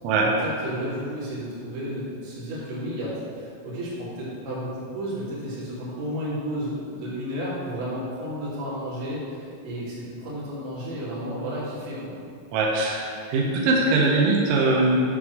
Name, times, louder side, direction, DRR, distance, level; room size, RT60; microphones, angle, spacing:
voice 1, 0.2-12.1, equal, 60° right, -9 dB, 3.8 m, -32 dB
voice 2, 12.5-15.0, right 3 dB, 90° right, -2 dB, 3.5 m, -21 dB
9.2 x 3.5 x 6.4 m, 2.4 s
omnidirectional pair, 5.9 m